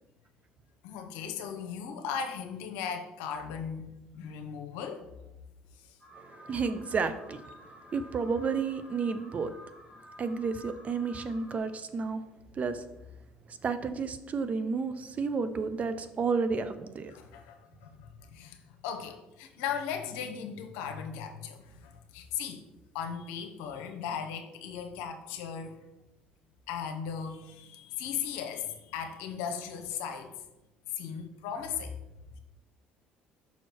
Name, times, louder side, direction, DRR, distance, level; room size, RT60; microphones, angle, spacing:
voice 1, 0.8-5.1 5.8-6.0 17.1-22.6 22.9-25.8 26.7-30.3 31.0-31.9, left 7 dB, 85° left, 5 dB, 0.9 m, -37 dB
Alarm, 6.0-11.6, left 1 dB, 15° right, 1.8 m, -52 dB
voice 2, 6.2-9.5 10.2-12.2 12.5-12.8 13.5-17.1, right 5 dB, 40° right, 11 dB, 0.6 m, -31 dB
5.7 x 4.5 x 4.5 m, 0.91 s
supercardioid pair, 75°, 4 cm